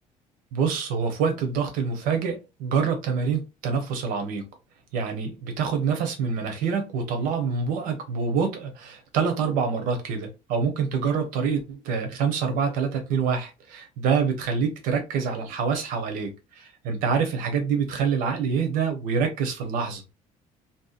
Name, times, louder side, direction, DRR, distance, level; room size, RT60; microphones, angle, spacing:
voice 1, 0.5-4.4 4.9-20.0, right 6 dB, 75° right, 0.8 m, -26 dB
2.7 x 2.1 x 2.4 m
cardioid pair, 170°, 14 cm